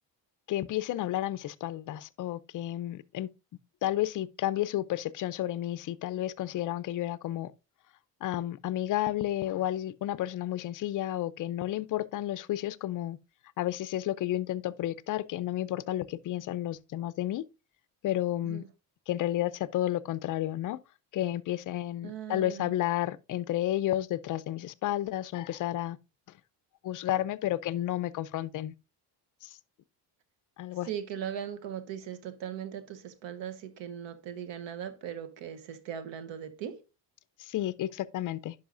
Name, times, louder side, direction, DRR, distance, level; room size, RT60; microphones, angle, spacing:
voice 1, 0.5-3.3 3.8-7.5 8.2-13.2 13.6-17.4 18.0-18.6 19.1-20.8 21.1-26.0 26.8-28.7 29.4-29.6 30.6-30.9 37.4-38.5, left 13 dB, 50° left, 0.4 m, -31 dB
voice 2, 22.0-22.7 30.9-36.8, right 9 dB, 85° right, 1.1 m, -39 dB
10.0 x 5.5 x 2.5 m
cardioid pair, 125°, 43 cm